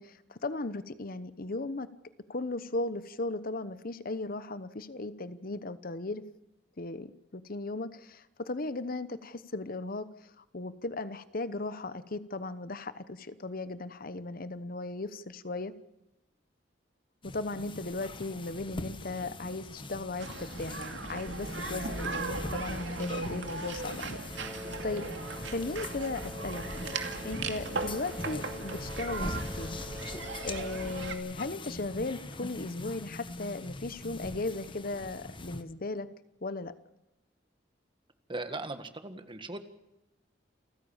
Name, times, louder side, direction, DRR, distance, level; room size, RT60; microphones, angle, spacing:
voice 1, 0.0-1.9 2.3-6.2 6.8-15.7 17.2-24.2 24.8-25.0 25.5-26.6 27.2-29.8 30.4-36.1 36.4-36.7, left 2 dB, 50° left, 13 dB, 1.0 m, -37 dB
sound 1, 17.2-35.6, left 2 dB, 25° left, 1.3 m, -42 dB
sound 2, 20.2-31.1, right 4 dB, 80° right, 2.4 m, -38 dB
Wind instrument woodwind instrument, 24.3-31.1, equal, 5° left, 5.8 m, -46 dB
voice 2, 38.3-39.6, right 2 dB, 25° right, 9 dB, 1.8 m, -38 dB
29.0 x 15.0 x 7.3 m, 0.94 s
head